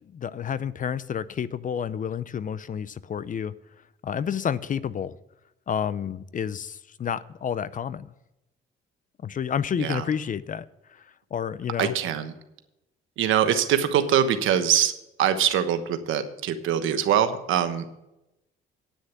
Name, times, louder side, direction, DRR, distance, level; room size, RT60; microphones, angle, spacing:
voice 1, 0.1-3.5 4.0-5.2 5.7-8.1 9.2-10.7 10.9-11.0 11.3-12.0, left 8 dB, 40° left, 0.5 m, -30 dB
voice 2, 11.8-12.3 13.2-14.9 15.2-17.9, right 9 dB, 85° right, 1.2 m, -23 dB
9.8 x 6.4 x 8.4 m
cardioid pair, 90°, 20 cm